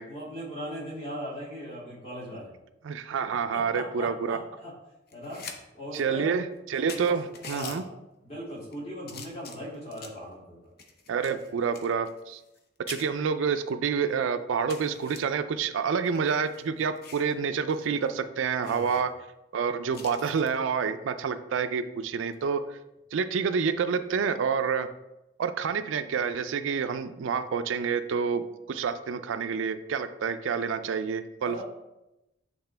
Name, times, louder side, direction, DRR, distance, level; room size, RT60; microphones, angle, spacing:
voice 1, 0.1-2.5 3.5-4.7 5.1-5.4 5.7-6.4 6.8-7.0 7.5-7.8 8.2-10.6 18.6-19.0 31.4-31.6, equal, 30° left, -6 dB, 2.3 m, -38 dB
voice 2, 2.8-4.4 5.9-7.8 11.1-12.4 12.9-19.1 19.5-22.8 23.1-24.9 25.4-28.4 28.7-31.6, right 6 dB, 75° right, 10 dB, 0.4 m, -28 dB
sound 1, 5.1-5.6 5.9-6.0 6.6-6.7 6.9-7.8 8.5-8.7 9.1-10.2 10.8-12.6 12.9-13.0 13.7-13.8 14.1-14.2 14.7-15.2 16.0-17.3 17.7-17.9 18.1-18.2 18.6-19.0 19.9-20.5 22.2-22.5, left 5 dB, 50° left, 0.7 m, -44 dB
8.0 x 3.6 x 3.3 m, 0.92 s
head